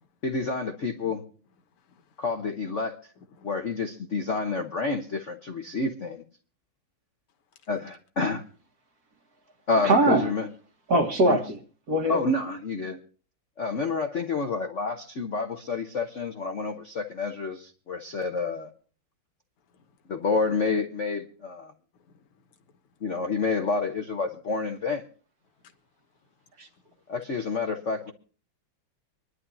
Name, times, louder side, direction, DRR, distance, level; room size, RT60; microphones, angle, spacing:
voice 1, 0.2-1.2 2.2-3.0 3.4-6.2 7.7-8.4 9.7-10.5 11.3-11.5 12.1-13.0 13.6-18.7 20.1-21.7 23.0-25.1 27.1-28.1, left 4 dB, 50° left, 0.9 m, -29 dB
voice 2, 0.8-1.2 1.8-2.2 3.2-3.5 19.7-20.0 21.9-22.8 25.6-25.7, left 5 dB, 85° left, 2.2 m, -57 dB
voice 3, 9.8-10.3 10.9-11.6 11.9-12.2 26.6-26.7, right 1 dB, 45° right, 1.9 m, -21 dB
26.0 x 11.0 x 2.7 m
omnidirectional pair, 2.4 m